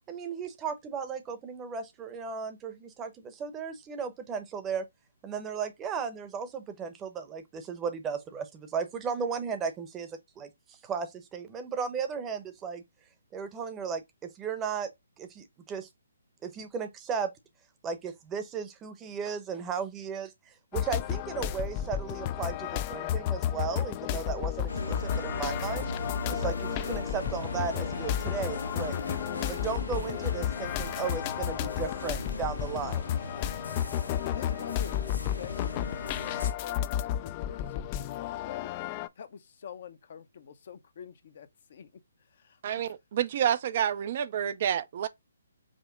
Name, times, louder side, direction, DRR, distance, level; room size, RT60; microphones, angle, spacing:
voice 1, 0.1-4.9 5.2-12.8 13.3-14.9 15.2-15.9 16.4-17.3 17.8-25.9 26.3-29.0 29.5-33.1, right 6 dB, 15° right, 0.8 m, -35 dB
sound 1, 20.7-39.1, left 11 dB, 30° left, 0.3 m, -32 dB
sound 2, 24.7-36.5, left 2 dB, 80° left, 1.2 m, -37 dB
voice 2, 34.3-38.8 39.2-41.9 42.4-42.8, left 7 dB, 55° left, 0.7 m, -47 dB
voice 3, 42.6-45.1, right 9 dB, 45° right, 0.4 m, -29 dB
5.1 x 2.1 x 3.6 m
hypercardioid pair, 145°, 0 cm